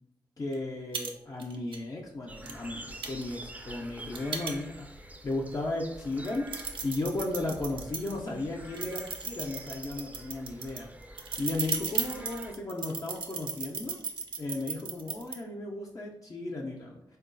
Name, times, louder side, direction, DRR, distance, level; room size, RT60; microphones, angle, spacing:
voice 1, 0.4-10.9 11.4-14.0 14.4-17.2, left 2 dB, 40° left, -1 dB, 0.5 m, -35 dB
sound 1, 0.5-0.6 0.9-1.1 1.4-1.8 2.5-2.6 3.0-5.0 5.5-5.6 6.1-8.1 8.7-15.3, right 5 dB, 80° right, 0.4 m, -36 dB
sound 2, 2.3-12.5, right 1 dB, 15° right, 0.4 m, -47 dB
3.7 x 2.3 x 2.5 m, 0.78 s
cardioid pair, 45°, 9 cm